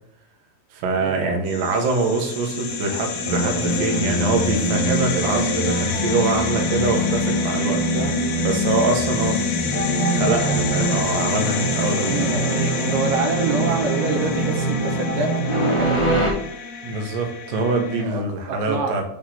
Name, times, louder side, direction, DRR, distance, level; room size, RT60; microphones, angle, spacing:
voice 1, 0.7-7.8 8.4-9.4 10.1-12.3 16.8-19.0, right 3 dB, 70° right, 2 dB, 2.6 m, -24 dB
sound 1, 1.5-18.0, left 6 dB, 75° left, 1.4 m, -29 dB
sound 2, 3.2-16.3, right 1 dB, 15° left, 1.1 m, -24 dB
voice 2, 12.0-16.2 18.0-18.2 18.5-19.0, right 4 dB, 85° right, 3 dB, 2.9 m, -27 dB
6.9 x 3.6 x 5.8 m, 0.76 s
omnidirectional pair, 4.4 m